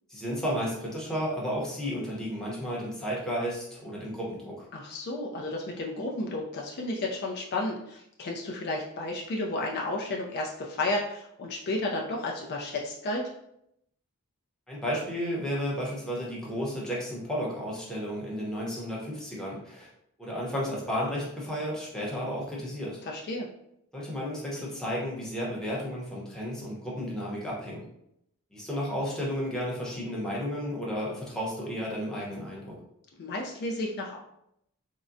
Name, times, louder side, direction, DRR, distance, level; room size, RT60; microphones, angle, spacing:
voice 1, 0.1-4.7 14.7-19.9 20.2-23.0 23.9-27.8 28.5-32.8, equal, 5° left, -5 dB, 0.7 m, -33 dB
voice 2, 4.7-13.2 23.0-23.5 33.2-34.2, left 2 dB, 50° left, -1 dB, 0.4 m, -32 dB
3.6 x 2.1 x 2.5 m, 0.77 s
head